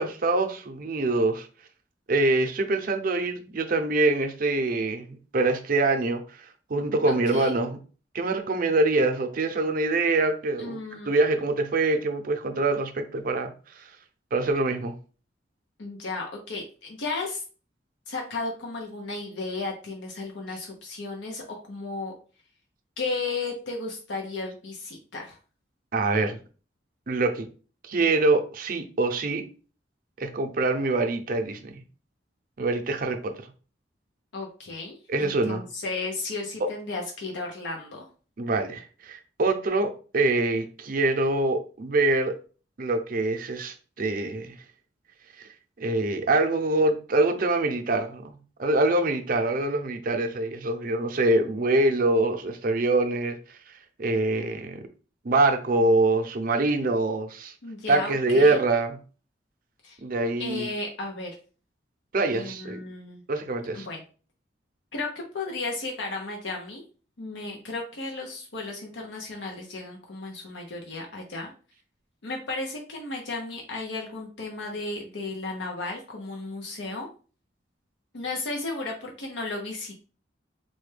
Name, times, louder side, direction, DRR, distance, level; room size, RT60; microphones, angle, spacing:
voice 1, 0.0-1.5 2.1-6.4 6.7-7.8 8.1-10.8 11.1-13.9 14.3-14.9 25.9-26.4 27.1-27.5 27.9-29.4 30.2-31.7 32.6-33.3 35.1-35.6 38.4-42.4 42.8-44.6 45.4-45.5 45.8-53.4 54.0-54.8 55.2-57.5 57.9-59.0 60.0-60.7 62.1-62.8 63.3-63.9, right 2 dB, 50° right, 0.5 m, -24 dB
voice 2, 7.0-7.5 10.6-11.1 15.8-17.4 18.1-22.1 23.0-25.4 34.3-38.1 57.6-58.6 59.8-60.0 60.4-61.4 62.3-63.3 63.7-64.0 64.9-66.8 67.2-71.5 72.2-77.1 78.1-80.0, left 3 dB, 85° left, 0.7 m, -34 dB
4.1 x 2.2 x 3.2 m
head